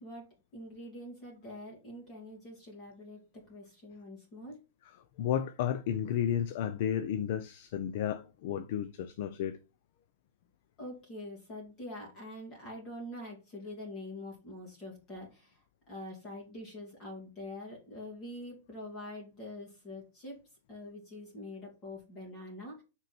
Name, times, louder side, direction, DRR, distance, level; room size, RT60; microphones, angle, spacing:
voice 1, 0.0-4.6 10.8-20.4 20.7-22.8, left 1 dB, 25° left, 2.8 m, -45 dB
voice 2, 5.2-9.6, left 9 dB, 45° left, 0.6 m, -32 dB
6.4 x 4.5 x 4.4 m
supercardioid pair, 165°, 0 cm